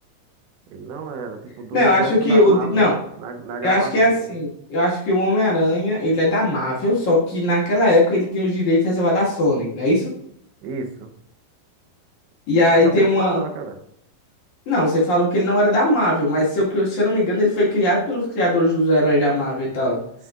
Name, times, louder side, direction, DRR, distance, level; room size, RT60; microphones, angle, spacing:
voice 1, 0.7-4.4 10.6-11.1 12.7-13.8, right 5 dB, 90° right, 5 dB, 3.2 m, -31 dB
voice 2, 1.7-2.9 3.6-10.1 12.5-13.4 14.7-20.0, left 1 dB, 50° left, -6 dB, 2.7 m, -19 dB
9.1 x 7.1 x 2.5 m, 0.71 s
omnidirectional pair, 5.0 m